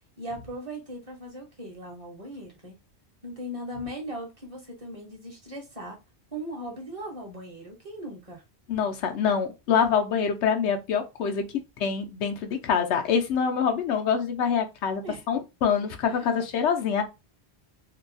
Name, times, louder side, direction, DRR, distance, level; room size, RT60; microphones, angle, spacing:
voice 1, 0.2-2.7 3.2-6.0 6.3-8.4 15.0-15.2 16.1-16.3, equal, 35° right, 0.8 m, -38 dB
voice 2, 8.7-11.4 11.8-15.0 15.3-17.0, left 7 dB, 85° left, 0.9 m, -25 dB
2.7 x 2.3 x 2.5 m
omnidirectional pair, 1.1 m